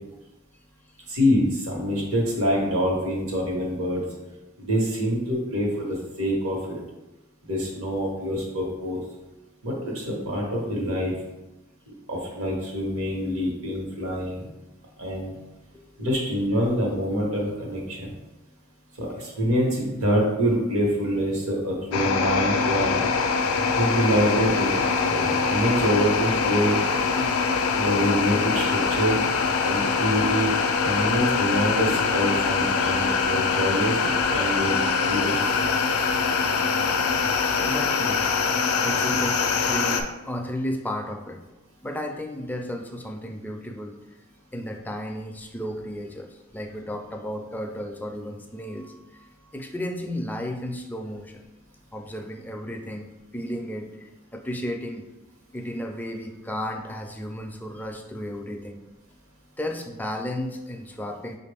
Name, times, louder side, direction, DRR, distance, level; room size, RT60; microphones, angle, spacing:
voice 1, 1.1-4.0 4.6-6.8 7.4-9.0 9.6-11.1 12.1-14.5 15.0-15.4 16.0-18.1 19.0-22.9 23.7-24.7 25.0-26.8 27.7-29.2 29.6-30.5 30.8-35.7, equal, 80° right, -2 dB, 1.2 m, -25 dB
sound 1, 21.9-40.0, left 5 dB, 90° left, 0.4 m, -23 dB
voice 2, 37.6-38.3 38.8-41.4 41.8-44.0 44.5-51.4 51.9-55.1 55.5-58.8 59.6-61.4, equal, 10° left, 3 dB, 0.3 m, -33 dB
5.2 x 2.4 x 3.4 m, 1.0 s
head